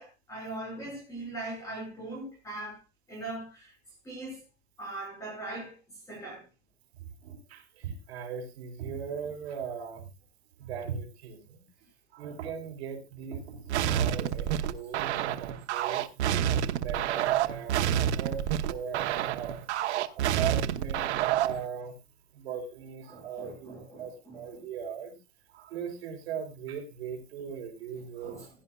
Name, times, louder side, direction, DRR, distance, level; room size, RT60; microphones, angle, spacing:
voice 1, 0.0-2.8 3.1-3.7 4.0-4.4 4.8-5.8 6.1-6.5 21.0-21.1 23.1-24.7 27.9-28.5, right 2 dB, 10° left, 5.5 m, -41 dB
voice 2, 6.9-10.1 10.6-11.6 12.1-21.1 21.3-22.0 22.3-25.2 25.5-28.5, right 7 dB, 65° right, 3.6 m, -39 dB
sound 1, 13.7-21.6, right 10 dB, 85° right, 1.1 m, -28 dB
16.5 x 11.0 x 2.3 m
supercardioid pair, 175°, 33 cm